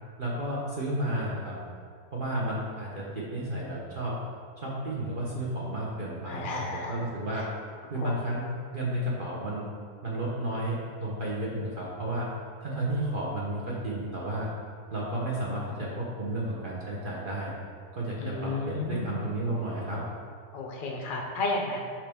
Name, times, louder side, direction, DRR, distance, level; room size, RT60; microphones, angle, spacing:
voice 1, 0.2-1.6 2.1-4.2 4.6-7.4 7.9-9.6 10.0-12.3 12.6-14.5 14.9-17.5 17.9-20.0, right 1 dB, 45° right, -5 dB, 0.7 m, -32 dB
voice 2, 6.3-7.0 7.3-7.4 7.9-8.2 18.2-19.3 20.5-21.8, left 2 dB, 50° left, 0 dB, 0.6 m, -33 dB
5.9 x 4.7 x 3.5 m, 2.1 s
omnidirectional pair, 1.8 m